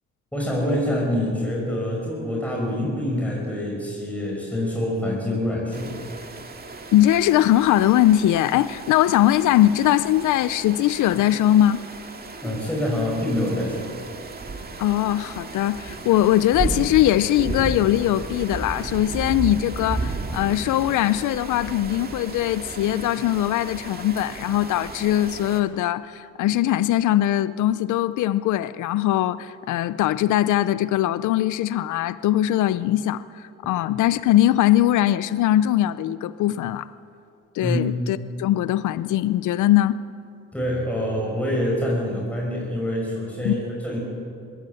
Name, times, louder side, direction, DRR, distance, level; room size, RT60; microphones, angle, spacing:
voice 1, 0.3-6.0 12.4-13.9 37.6-37.8 40.5-44.0, left 1 dB, 5° left, -3 dB, 5.6 m, -26 dB
sound 1, 5.7-25.6, right 3 dB, 30° right, 2.2 m, -34 dB
voice 2, 6.9-11.8 14.8-36.9 37.6-40.0 43.4-43.6, left 13 dB, 80° left, 15 dB, 0.6 m, -21 dB
22.0 x 16.0 x 7.9 m, 2.4 s
cardioid pair, 90°, 30 cm